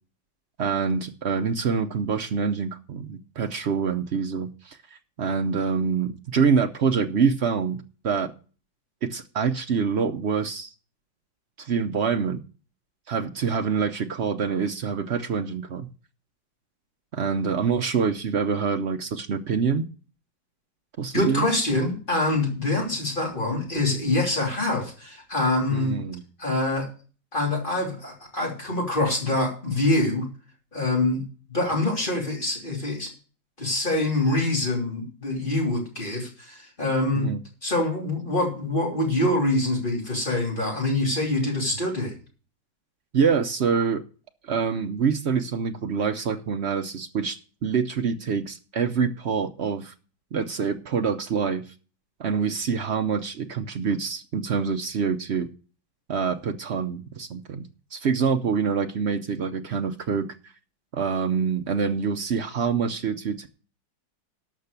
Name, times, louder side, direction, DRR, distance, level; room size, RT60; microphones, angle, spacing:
voice 1, 0.6-8.3 9.0-10.7 11.6-12.4 13.1-15.9 17.1-19.9 21.0-21.5 25.7-26.2 37.1-37.4 43.1-44.0 44.4-49.9 50.3-51.6 52.2-55.5 56.1-60.3 60.9-63.5, right 6 dB, 60° right, 7 dB, 0.7 m, -26 dB
voice 2, 21.1-26.0 26.4-26.9 27.3-30.3 30.7-33.1 33.6-37.3 37.6-42.1, left 2 dB, 25° left, -1 dB, 3.3 m, -25 dB
12.5 x 5.8 x 6.7 m, 0.38 s
omnidirectional pair, 2.0 m